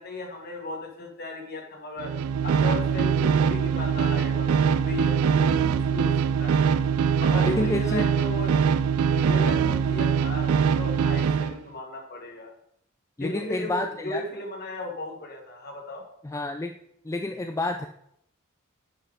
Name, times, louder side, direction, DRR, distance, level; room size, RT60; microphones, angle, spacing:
voice 1, 0.0-2.1 2.4-5.6 5.9-6.1 6.4-6.7 7.2-8.6 9.1-12.5 13.2-16.0, left 2 dB, 50° left, 1 dB, 1.7 m, -36 dB
sound 1, 2.0-11.6, right 7 dB, 90° right, 0.3 m, -23 dB
voice 2, 7.4-8.1 13.2-14.2 16.2-16.8 17.0-17.9, left 2 dB, 15° left, 4 dB, 0.3 m, -29 dB
9.9 x 5.5 x 3.7 m, 0.73 s
head